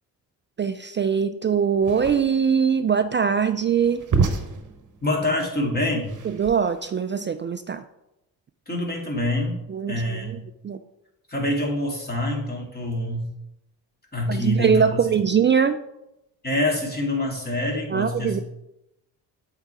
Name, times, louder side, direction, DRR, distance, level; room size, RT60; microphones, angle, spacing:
voice 1, 0.6-4.0 6.2-7.8 9.7-10.4 10.6-10.8 14.3-15.8 17.9-18.4, right 7 dB, 30° right, 10 dB, 0.3 m, -22 dB
sound 1, 1.8-6.9, right 5 dB, 45° right, 1.1 m, -29 dB
voice 2, 5.0-6.2 8.7-9.6 9.9-10.4 11.3-13.3 14.1-15.1 16.4-18.4, left 1 dB, 20° left, -1 dB, 2.6 m, -26 dB
8.0 x 3.8 x 4.5 m, 0.88 s
supercardioid pair, 50°, 45 cm